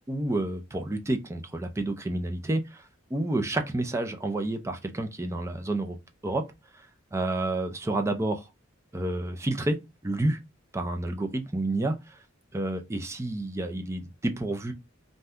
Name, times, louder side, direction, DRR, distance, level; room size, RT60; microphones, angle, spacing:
voice 1, 0.1-2.8 3.1-6.0 6.2-6.4 7.1-8.4 8.9-9.8 10.0-10.4 10.7-12.2 12.5-14.7, right 2 dB, 15° right, 0.4 m, -29 dB
2.6 x 2.2 x 3.4 m
head